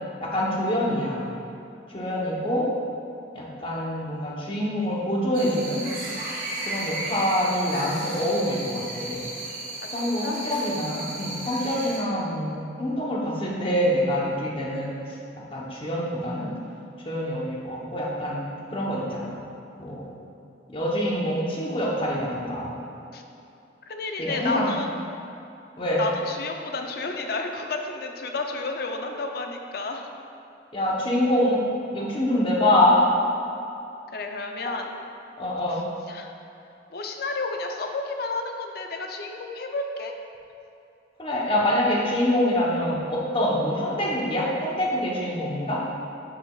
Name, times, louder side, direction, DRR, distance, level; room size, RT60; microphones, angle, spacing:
voice 1, 0.2-1.3 1.9-2.7 3.3-5.8 6.7-9.3 9.9-14.9 15.5-16.5 17.0-18.4 18.7-19.3 19.8-20.1 20.7-22.8 24.2-24.7 25.8-26.0 30.7-31.6 31.9-33.0 35.4-35.8 41.2-45.8, left 1 dB, 30° left, -4 dB, 0.9 m, -25 dB
voice 2, 2.0-2.6 10.0-10.4 23.1-23.2 23.9-24.9 26.0-30.1 34.1-34.9 35.7-35.8 36.1-36.3 36.9-40.2, left 3 dB, 55° left, 3 dB, 0.5 m, -31 dB
sound 1, 5.3-12.0, right 2 dB, 50° right, 1.3 m, -34 dB
9.6 x 4.9 x 2.4 m, 2.7 s
head